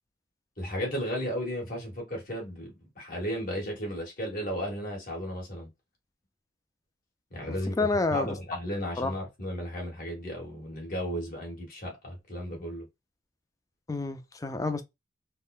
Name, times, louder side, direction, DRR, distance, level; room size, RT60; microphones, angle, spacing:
voice 1, 0.6-5.7 7.3-7.7 8.1-12.9, equal, 45° left, 1.4 m, -34 dB
voice 2, 7.5-8.3 9.0-9.1 13.9-14.8, left 3 dB, 15° left, 0.3 m, -29 dB
3.5 x 2.1 x 2.4 m
head